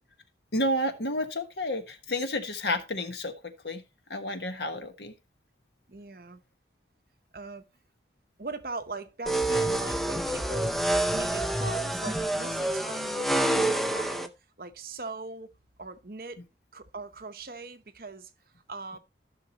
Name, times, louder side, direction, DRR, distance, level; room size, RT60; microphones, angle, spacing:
voice 1, 0.5-3.8 4.1-5.1, left 1 dB, 75° left, 1.3 m, -31 dB
voice 2, 5.9-6.4 7.3-7.6 8.4-10.8 11.1-14.3 14.6-15.5 15.8-16.4 16.7-18.3 18.7-19.0, right 3 dB, 55° right, 0.8 m, -40 dB
sound 1, 9.3-14.3, right 1 dB, ahead, 0.5 m, -27 dB
14.5 x 5.9 x 2.9 m
head